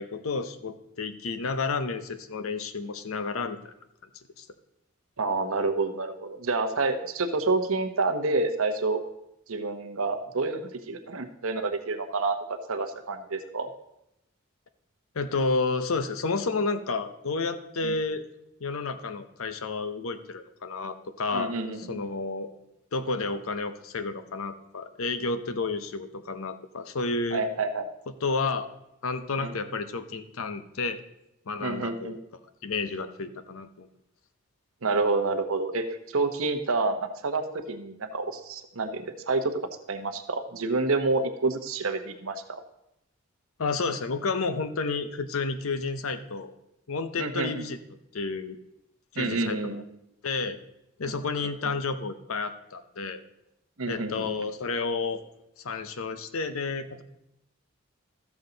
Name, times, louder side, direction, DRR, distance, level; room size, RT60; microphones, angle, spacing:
voice 1, 0.0-3.7 4.4-4.5 15.1-18.3 18.6-21.5 21.8-22.5 22.9-27.4 28.2-28.7 29.0-31.0 31.5-32.2 32.6-33.9 43.6-46.5 46.9-47.8 48.1-48.6 49.1-49.6 50.2-50.6 51.0-53.2 53.9-55.2 55.6-57.0, left 4 dB, 75° left, 11 dB, 0.7 m, -31 dB
voice 2, 5.2-9.0 9.5-10.6 10.9-13.7 17.8-18.0 21.3-22.0 27.3-27.8 29.4-29.5 31.6-32.2 34.8-37.0 37.2-39.5 39.9-42.6 47.2-47.6 49.2-49.8 53.8-54.3, right 3 dB, 75° right, 6 dB, 0.9 m, -28 dB
13.0 x 7.0 x 3.9 m, 0.84 s
head